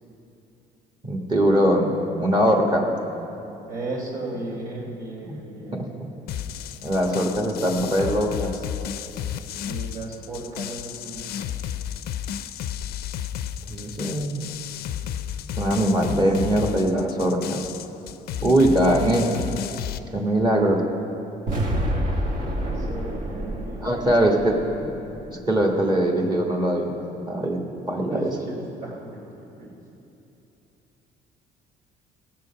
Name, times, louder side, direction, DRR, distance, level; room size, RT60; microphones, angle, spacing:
voice 1, 1.0-1.9 2.2-2.8 5.2-5.4 5.7-5.8 6.8-8.5 13.7-14.4 15.6-17.7 18.4-19.3 20.1-20.8 23.8-24.9 25.5-27.6 27.9-28.3, right 1 dB, 25° right, 0 dB, 1.5 m, -21 dB
voice 2, 3.7-5.8 9.5-11.5 22.5-24.0 28.1-29.8, right 2 dB, 75° right, -7 dB, 2.8 m, -35 dB
sound 1, 6.3-20.0, left 9 dB, 70° left, 0.5 m, -33 dB
sound 2, 21.5-25.6, equal, 50° right, 1.3 m, -28 dB
17.0 x 7.6 x 5.7 m, 2.9 s
cardioid pair, 110°, 17 cm